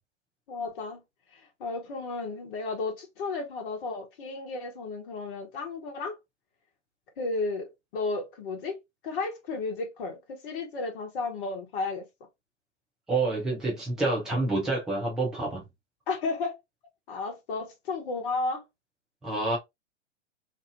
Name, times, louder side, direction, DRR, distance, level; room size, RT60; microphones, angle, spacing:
voice 1, 0.5-1.0 1.3-6.2 7.2-12.1 16.1-16.5 17.1-18.6, left 3 dB, 45° left, 1.0 m, -33 dB
voice 2, 13.1-15.6 19.2-19.6, right 2 dB, ahead, 0.3 m, -28 dB
2.8 x 2.4 x 2.5 m
figure-of-eight pair, 110°, 36 cm